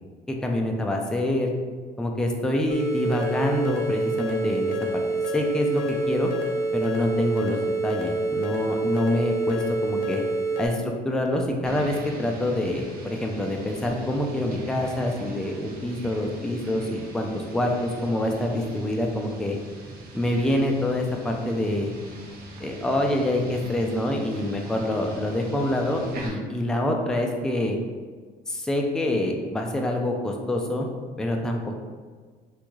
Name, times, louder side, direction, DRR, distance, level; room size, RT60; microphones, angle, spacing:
voice 1, 0.3-1.5 2.0-4.7 5.3-6.3 6.7-10.2 10.6-19.6 20.1-21.9 22.6-27.8 28.5-30.9 31.2-31.8, left 1 dB, 5° left, 1 dB, 0.3 m, -26 dB
sound 1, 2.7-10.7, right 2 dB, 55° left, 0.5 m, -27 dB
sound 2, 11.6-26.3, right 1 dB, 60° right, 0.7 m, -42 dB
3.5 x 2.3 x 3.0 m, 1.5 s
cardioid pair, 110°, 17 cm